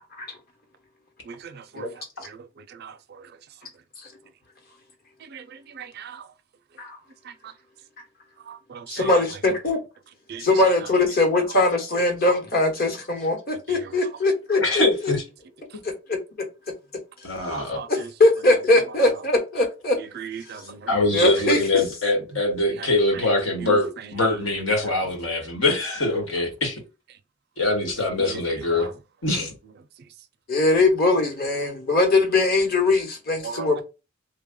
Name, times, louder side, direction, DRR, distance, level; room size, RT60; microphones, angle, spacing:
voice 1, 1.2-3.4 5.2-6.3 7.2-7.5 8.4-9.4 10.3-10.9 11.5-11.6 13.5-14.0 15.7-15.8 17.5-18.1 18.9-19.2 20.0-21.0 21.4-21.5 22.3-24.9 27.9-28.9 29.4-29.5 33.4-33.8, right 6 dB, 55° right, 0.4 m, -39 dB
voice 2, 8.9-9.8 10.4-15.1 16.1-16.2 17.9-20.0 21.1-21.8 30.5-33.8, left 2 dB, 50° left, 1.1 m, -21 dB
voice 3, 14.5-15.2 17.2-17.8 20.9-26.8 27.6-28.9 29.2-29.5, left 2 dB, 85° left, 1.4 m, -23 dB
3.3 x 2.3 x 3.6 m
head